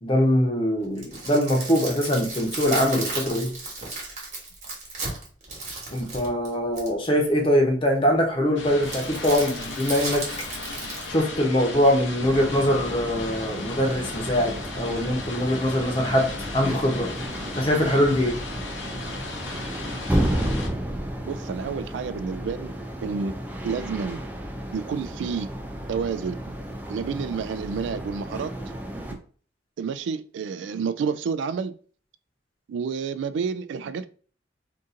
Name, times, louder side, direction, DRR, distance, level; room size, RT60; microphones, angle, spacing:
voice 1, 0.0-3.5 5.9-10.2 11.1-17.1 17.5-18.4, equal, 30° left, 0.8 m, -23 dB
sound 1, 0.8-7.1 8.8-11.1, right 3 dB, 40° right, 1.2 m, -34 dB
sound 2, 8.6-20.7, left 3 dB, 90° left, 0.7 m, -36 dB
sound 3, 12.2-29.1, right 1 dB, 10° right, 0.4 m, -32 dB
voice 2, 21.2-22.7 23.0-23.3 23.6-24.2 24.7-25.5 25.9-26.6 26.9-28.5 29.1-29.2 29.8-31.8 32.7-34.1, right 6 dB, 80° right, 0.3 m, -29 dB
2.7 x 2.5 x 3.7 m
head